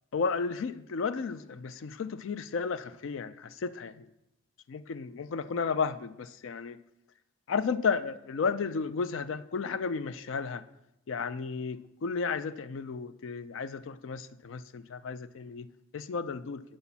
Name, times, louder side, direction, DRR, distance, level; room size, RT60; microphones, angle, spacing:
voice 1, 0.1-4.1 4.7-6.8 7.5-10.6 11.1-16.6, left 5 dB, 70° left, 14 dB, 0.4 m, -33 dB
8.7 x 4.2 x 7.0 m, 0.87 s
head